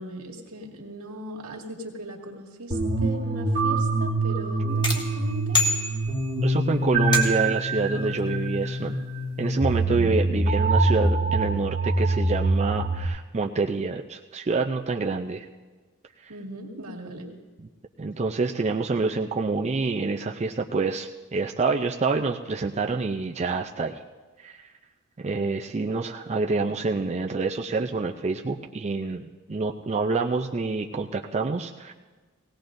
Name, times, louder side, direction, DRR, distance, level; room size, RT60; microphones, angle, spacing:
voice 1, 0.0-5.6 8.0-8.3 9.9-10.2 16.3-17.3, equal, 80° right, -1 dB, 2.1 m, -38 dB
sound 1, 2.7-13.1, right 2 dB, 50° right, 1.3 m, -25 dB
sound 2, 4.8-6.5 7.1-7.7, left 3 dB, 20° left, 1.6 m, -27 dB
voice 2, 6.4-9.0 9.4-15.4 16.2-16.3 17.6-17.7 18.0-24.0 24.4-24.7 25.2-31.9, right 3 dB, 30° right, 2 dB, 0.5 m, -27 dB
18.0 x 17.5 x 2.6 m, 1.3 s
head